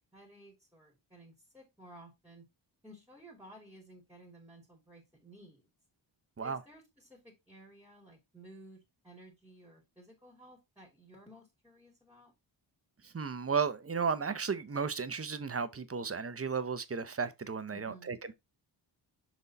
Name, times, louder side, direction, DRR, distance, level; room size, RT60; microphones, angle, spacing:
voice 1, 0.0-2.4 2.8-5.7 6.4-12.3 17.7-18.2, right 1 dB, 5° right, 2.8 m, -55 dB
voice 2, 13.0-18.3, right 5 dB, 30° right, 0.8 m, -34 dB
6.2 x 4.0 x 4.1 m
cardioid pair, 75°, 47 cm